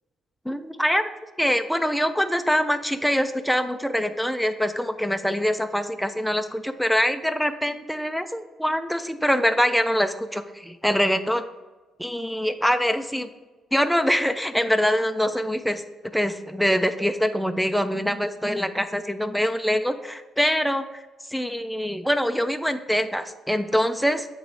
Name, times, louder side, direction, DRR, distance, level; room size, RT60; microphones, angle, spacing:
voice 1, 0.5-1.0 1.4-11.4 12.0-13.3 13.7-15.8 16.1-20.8 21.3-24.3, equal, ahead, 8 dB, 0.3 m, -24 dB
7.9 x 3.0 x 4.6 m, 1.2 s
cardioid pair, 90°, 0 cm